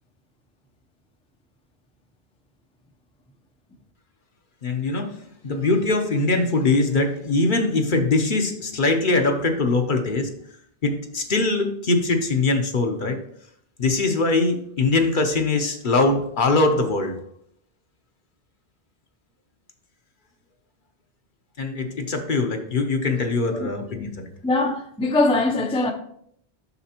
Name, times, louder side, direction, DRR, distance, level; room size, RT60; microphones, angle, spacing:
voice 1, 4.6-5.1 5.4-10.3 10.8-13.2 13.8-17.2 21.6-24.3, left 3 dB, 55° left, 0.9 m, -22 dB
voice 2, 24.4-25.9, left 2 dB, 5° left, 0.5 m, -22 dB
8.1 x 6.3 x 2.9 m
omnidirectional pair, 1.1 m